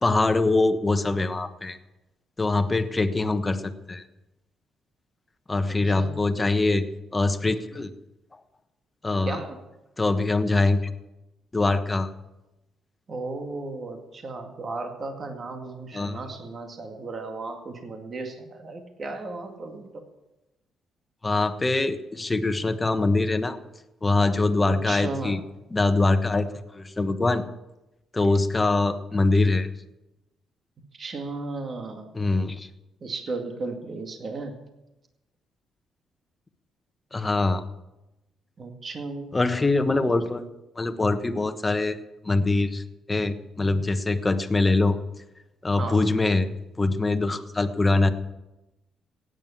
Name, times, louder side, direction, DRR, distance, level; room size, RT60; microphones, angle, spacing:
voice 1, 0.0-1.8 2.4-4.0 5.5-6.8 7.1-7.9 8.3-8.4 9.0-9.4 10.0-10.8 11.5-12.1 15.9-16.2 21.2-23.6 24.0-25.4 25.7-27.4 28.1-29.7 32.1-32.7 37.1-37.6 39.3-40.4 40.8-42.0 42.2-42.8 43.1-45.0 45.6-46.5 46.8-48.1, left 2 dB, 20° left, 9 dB, 1.2 m, -23 dB
voice 2, 5.7-6.3 9.3-9.6 13.1-20.0 24.7-25.4 30.9-32.1 33.0-34.6 38.6-39.4 45.8-46.1, right 3 dB, 45° right, 4 dB, 2.1 m, -35 dB
16.0 x 9.6 x 7.3 m, 0.97 s
cardioid pair, 90°, 0 cm